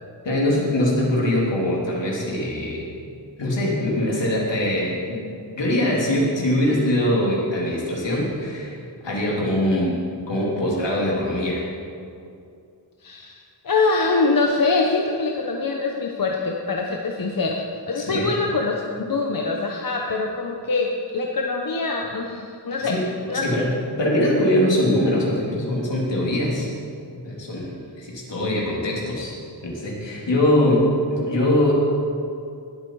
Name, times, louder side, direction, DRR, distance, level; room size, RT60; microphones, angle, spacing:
voice 1, 0.2-2.9 3.4-5.3 5.6-8.7 9.0-10.0 10.3-11.6 18.0-18.3 22.8-23.0 23.4-23.7 24.0-26.7 27.2-29.3 29.6-31.7, left 1 dB, 70° left, -3 dB, 3.3 m, -22 dB
voice 2, 13.0-20.9 21.1-22.9 23.3-23.6, left 3 dB, 50° left, 0 dB, 1.0 m, -24 dB
20.0 x 8.2 x 4.8 m, 2.4 s
wide cardioid pair, 140°, 45 cm